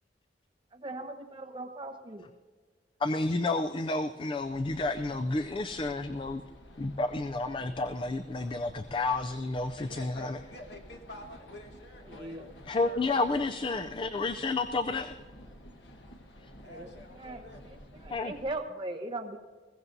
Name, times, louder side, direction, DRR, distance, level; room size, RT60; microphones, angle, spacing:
voice 1, 0.7-2.2 12.1-12.4 16.6-17.4 17.9-19.4, right 2 dB, 30° right, 3 dB, 1.1 m, -39 dB
voice 2, 3.0-6.4 6.8-10.4 12.7-15.2 18.1-18.3, left 3 dB, 30° left, 10 dB, 0.4 m, -30 dB
sound 1, 4.4-18.5, equal, 90° left, 1.5 m, -51 dB
voice 3, 9.8-13.5 16.6-17.6, left 1 dB, 70° left, 1 dB, 2.2 m, -48 dB
21.0 x 16.0 x 2.7 m, 1.4 s
head